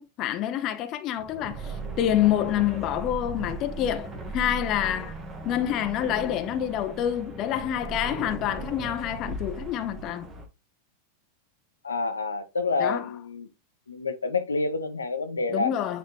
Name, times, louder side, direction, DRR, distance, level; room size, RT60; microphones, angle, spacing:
voice 1, 0.0-5.2 5.4-10.3 12.8-13.1 15.5-16.0, left 11 dB, 35° left, 0.6 m, -27 dB
sound 1, 1.2-10.5, right 3 dB, 25° right, 1.1 m, -37 dB
voice 2, 11.8-13.5 13.9-15.7, left 3 dB, 75° left, 0.7 m, -28 dB
9.4 x 3.3 x 3.1 m
figure-of-eight pair, 90°, 0 cm